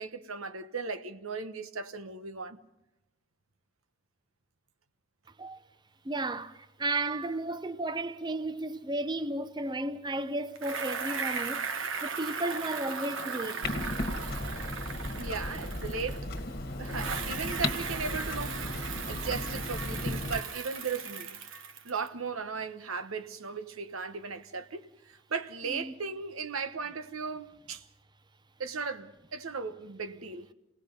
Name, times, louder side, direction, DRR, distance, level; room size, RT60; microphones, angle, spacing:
voice 1, 0.0-2.6 15.2-16.3 16.8-18.6 19.1-21.4 21.8-27.8 28.6-30.5, right 5 dB, 85° right, 1.1 m, -37 dB
voice 2, 6.0-11.7 12.0-13.7 25.7-25.9, right 2 dB, 20° right, 0.6 m, -33 dB
Bicycle, 10.6-16.4 16.8-22.1, right 5 dB, 65° right, 1.3 m, -37 dB
Clock, 13.6-20.4, left 2 dB, 45° left, 1.6 m, -35 dB
28.5 x 18.5 x 5.4 m
head